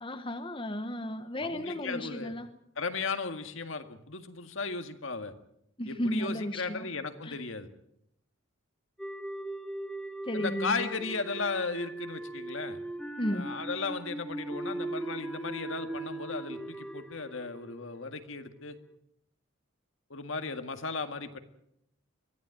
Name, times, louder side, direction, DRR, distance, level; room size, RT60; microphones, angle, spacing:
voice 1, 0.0-2.5 5.8-6.9 7.2-7.4 10.2-10.9 13.2-13.5, equal, 25° left, 8 dB, 1.1 m, -34 dB
voice 2, 1.4-2.3 2.8-5.3 5.9-7.7 10.3-12.8 13.3-18.8 20.1-21.4, left 4 dB, 65° left, 7 dB, 2.0 m, -36 dB
sound 1, 9.0-18.2, right 2 dB, 5° left, 1.2 m, -39 dB
23.5 x 15.0 x 9.1 m, 0.77 s
head